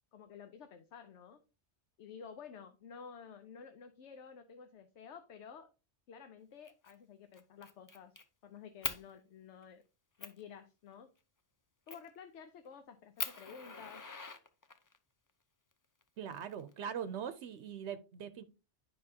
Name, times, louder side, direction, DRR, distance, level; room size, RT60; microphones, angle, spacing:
voice 1, 0.1-1.4 2.0-5.7 6.1-8.2 8.4-9.8 10.2-11.1 11.9-14.1, left 6 dB, 85° left, 1.0 m, -52 dB
Fire, 6.7-6.9 7.3-8.2 8.8-9.0 9.6-9.7 10.2-10.4 11.9-12.2 12.7-12.8 13.2-15.0 16.0-17.0, left 4 dB, 30° left, 0.4 m, -42 dB
voice 2, 16.2-18.4, right 8 dB, 75° right, 0.9 m, -41 dB
9.6 x 5.7 x 2.7 m
omnidirectional pair, 1.2 m